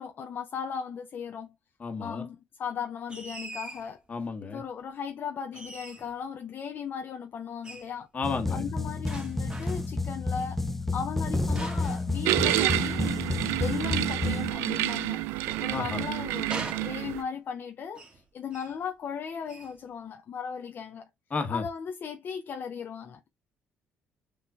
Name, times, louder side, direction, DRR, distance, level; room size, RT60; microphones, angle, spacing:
voice 1, 0.0-1.5 2.0-4.0 4.4-8.1 8.5-10.6 10.9-15.2 15.6-21.1 21.5-23.2, left 7 dB, 55° left, 0.6 m, -37 dB
voice 2, 1.8-2.2 4.1-4.6 8.1-8.7 15.7-16.0 21.3-21.6, left 4 dB, 35° left, 1.4 m, -32 dB
sound 1, 3.1-3.9 5.5-6.2 7.6-7.9 9.1-10.0 11.5-12.8 15.0-16.1 16.5-17.4 17.9-18.2 18.5-18.8 19.5-19.8, right 2 dB, 20° right, 1.6 m, -42 dB
sound 2, 8.2-14.5, left 3 dB, 5° left, 0.5 m, -30 dB
sound 3, 12.3-17.2, right 16 dB, 90° right, 0.3 m, -29 dB
6.8 x 3.1 x 2.4 m
supercardioid pair, 80°, 4 cm